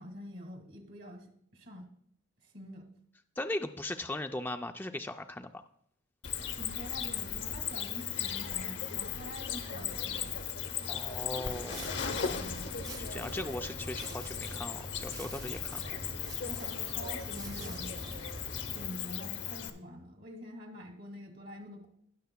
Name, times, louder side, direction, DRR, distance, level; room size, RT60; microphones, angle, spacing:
voice 1, 0.0-1.9 2.4-2.9 6.6-10.4 12.3-12.7 16.5-18.2 18.7-21.9, equal, 50° right, 3 dB, 1.8 m, -46 dB
voice 2, 3.4-5.6 10.9-11.9 13.1-15.9, left 1 dB, 10° left, 6 dB, 0.3 m, -38 dB
Cricket, 6.2-19.7, left 8 dB, 60° left, 0.8 m, -37 dB
sound 1, 8.9-16.5, equal, 75° right, 1.2 m, -55 dB
sound 2, 11.4-18.9, right 1 dB, 20° right, 0.8 m, -44 dB
20.0 x 6.7 x 2.2 m, 0.70 s
head